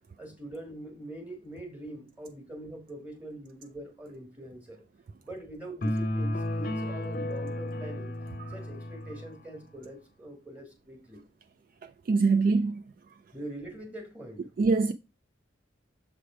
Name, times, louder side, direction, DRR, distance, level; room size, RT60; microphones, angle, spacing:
voice 1, 0.2-4.8 5.2-8.1 8.5-11.2 13.3-14.5, right 1 dB, 10° right, 1.6 m, -43 dB
sound 1, 5.8-9.4, left 1 dB, 45° left, 0.6 m, -33 dB
voice 2, 12.1-12.8 14.6-14.9, right 4 dB, 50° right, 0.3 m, -23 dB
6.9 x 3.3 x 4.8 m
head